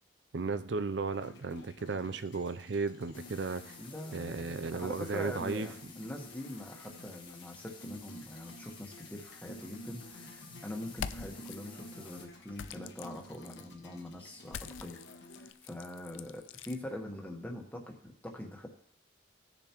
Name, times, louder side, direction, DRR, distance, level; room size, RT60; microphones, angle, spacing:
voice 1, 0.3-3.7 4.1-5.7, right 4 dB, 65° right, 13 dB, 0.5 m, -35 dB
sound 1, 1.1-15.5, equal, 65° left, 1.2 m, -52 dB
sound 2, 3.1-12.3, left 5 dB, 25° left, 1.1 m, -53 dB
voice 2, 3.8-15.0 15.3-18.7, left 1 dB, 10° left, 1 dB, 1.3 m, -43 dB
sound 3, 11.0-11.6 12.5-13.7 14.5-16.8, left 7 dB, 80° left, 0.4 m, -44 dB
17.0 x 6.9 x 3.0 m, 0.65 s
head